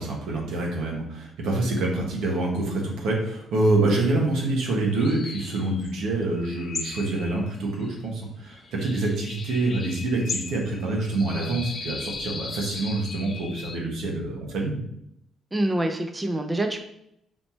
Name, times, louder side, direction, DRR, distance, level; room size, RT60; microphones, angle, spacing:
voice 1, 0.0-14.8, right 2 dB, 85° right, -1 dB, 1.2 m, -26 dB
sound 1, 4.9-13.8, left 4 dB, 40° left, 0.5 m, -38 dB
voice 2, 15.5-16.8, right 1 dB, 15° right, 4 dB, 0.5 m, -26 dB
4.3 x 2.8 x 4.3 m, 0.76 s
cardioid pair, 90°, 0 cm